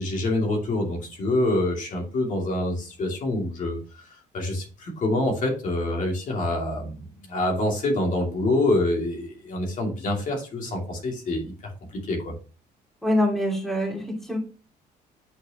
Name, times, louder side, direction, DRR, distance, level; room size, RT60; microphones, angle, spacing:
voice 1, 0.0-3.8 4.3-11.5 11.9-12.3, left 1 dB, 50° left, 0 dB, 2.7 m, -26 dB
voice 2, 13.0-14.4, left 1 dB, ahead, -1 dB, 2.5 m, -24 dB
8.3 x 4.9 x 3.0 m, 0.34 s
cardioid pair, 110°, 17 cm